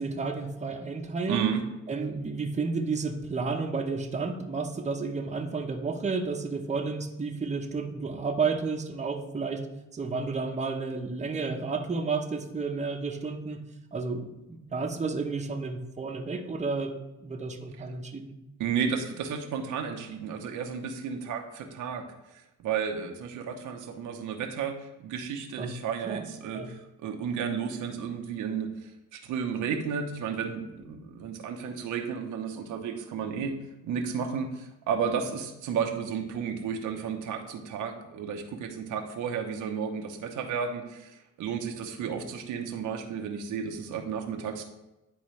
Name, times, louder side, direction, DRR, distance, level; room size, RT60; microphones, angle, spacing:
voice 1, 0.0-1.5 1.9-9.7 9.9-13.6 13.9-16.9 17.2-18.3 25.6-25.7 26.0-26.2 26.5-26.7, right 4 dB, 25° right, 3 dB, 0.8 m, -31 dB
voice 2, 1.3-1.6 18.6-22.0 22.3-33.5 33.8-44.6, right 7 dB, 85° right, 4 dB, 0.9 m, -33 dB
10.5 x 3.9 x 3.2 m, 0.97 s
cardioid pair, 90°, 30 cm